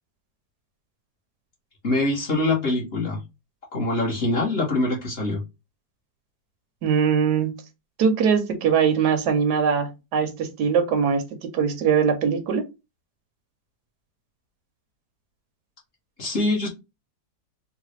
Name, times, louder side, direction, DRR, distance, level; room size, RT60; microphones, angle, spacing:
voice 1, 1.8-3.2 3.7-5.4 16.2-16.7, left 2 dB, 40° left, 1.1 m, -24 dB
voice 2, 6.8-7.6 8.0-12.6, right 6 dB, 75° right, 1.2 m, -22 dB
3.9 x 2.1 x 3.1 m
omnidirectional pair, 1.8 m